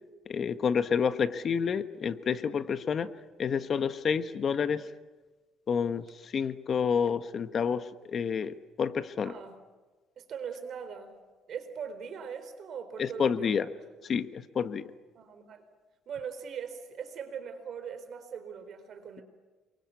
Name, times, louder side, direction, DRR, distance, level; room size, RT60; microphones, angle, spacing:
voice 1, 0.3-3.1 3.4-4.8 5.7-9.3 13.0-13.7 14.1-14.9, left 6 dB, 40° left, 11 dB, 1.3 m, -29 dB
voice 2, 9.2-9.6 10.2-11.1 11.5-13.6 15.1-15.6 16.1-19.2, right 7 dB, 50° right, 9 dB, 4.1 m, -40 dB
28.0 x 23.0 x 8.4 m, 1.3 s
cardioid pair, 125°, 0 cm